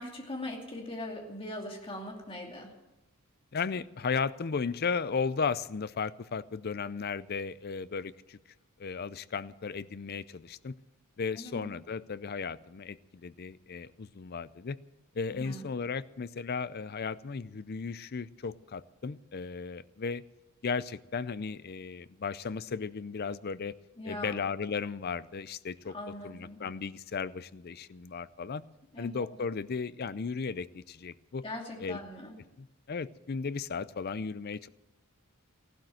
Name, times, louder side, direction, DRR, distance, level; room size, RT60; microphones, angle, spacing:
voice 1, 0.0-2.7 11.4-11.7 15.3-15.7 24.0-24.4 25.8-26.6 28.9-29.3 31.4-32.3, left 1 dB, 25° left, 1 dB, 2.7 m, -41 dB
voice 2, 3.5-8.4 8.8-10.7 11.2-14.8 15.1-20.2 20.6-23.7 24.0-28.6 29.0-31.4 31.8-32.0 32.6-34.7, left 5 dB, 45° left, 17 dB, 0.5 m, -35 dB
15.5 x 12.0 x 7.6 m, 0.98 s
head